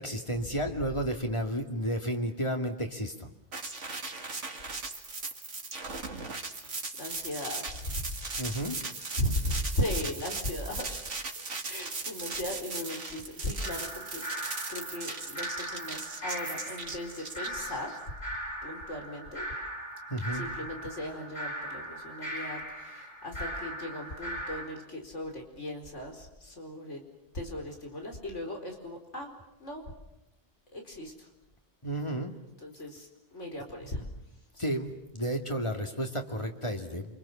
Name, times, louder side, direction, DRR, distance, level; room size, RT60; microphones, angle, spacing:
voice 1, 0.0-3.3 8.4-8.8 20.1-20.4 31.8-32.3 34.6-37.2, right 1 dB, 25° left, 3 dB, 2.5 m, -32 dB
sound 1, 3.5-18.0, right 3 dB, 85° right, 2.4 m, -38 dB
voice 2, 7.0-8.1 9.1-10.9 11.6-17.9 18.6-19.5 20.3-27.0 27.3-29.3 29.6-29.8 30.7-31.3 32.6-34.0, left 1 dB, 85° left, 3 dB, 4.9 m, -37 dB
sound 2, 13.6-24.6, right 1 dB, 55° left, 8.1 m, -39 dB
28.5 x 26.0 x 7.3 m, 0.91 s
omnidirectional pair, 1.2 m